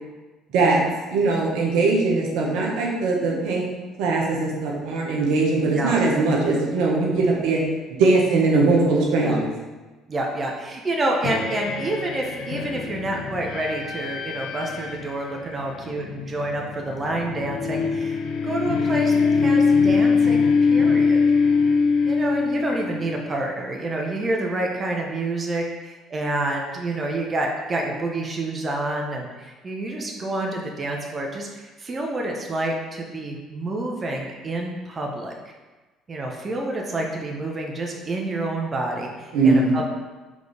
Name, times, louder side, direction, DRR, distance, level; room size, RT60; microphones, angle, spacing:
voice 1, 1.1-3.6 4.0-7.6 8.0-9.5 39.3-39.7, right 3 dB, 75° right, -2 dB, 1.2 m, -20 dB
voice 2, 5.7-6.0 9.2-9.4 10.1-21.2 22.0-35.3 36.1-39.9, right 2 dB, 35° right, 0 dB, 1.1 m, -28 dB
sound 1, 11.2-23.3, left 5 dB, 70° left, 0.6 m, -23 dB
5.2 x 4.0 x 5.0 m, 1.2 s
hypercardioid pair, 65°, 0 cm